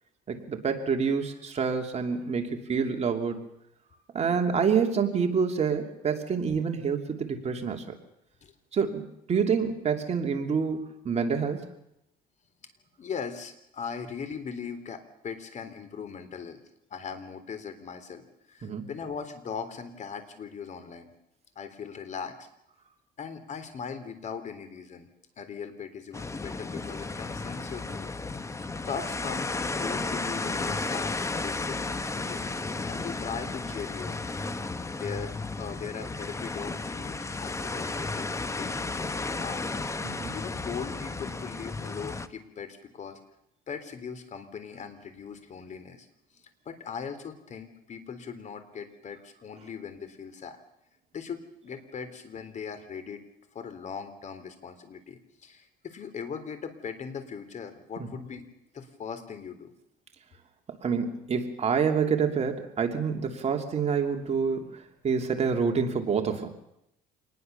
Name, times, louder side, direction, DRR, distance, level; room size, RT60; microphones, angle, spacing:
voice 1, 0.3-3.4 4.1-7.9 8.7-11.6 18.6-18.9 40.0-40.3 58.1-58.2 60.8-66.5, right 6 dB, 40° right, 4 dB, 2.9 m, -27 dB
voice 2, 13.0-16.6 16.9-21.1 21.6-22.5 23.2-25.1 25.4-28.1 28.9-32.4 32.9-34.2 35.0-38.3 38.6-39.6 40.0-43.2 43.7-46.1 46.7-50.6 51.1-53.2 53.5-58.5 58.7-59.7, left 6 dB, 45° left, 10 dB, 3.6 m, -39 dB
sound 1, 26.1-42.3, left 3 dB, 15° left, 1.2 m, -33 dB
26.5 x 20.5 x 6.9 m, 0.79 s
cardioid pair, 110°, 17 cm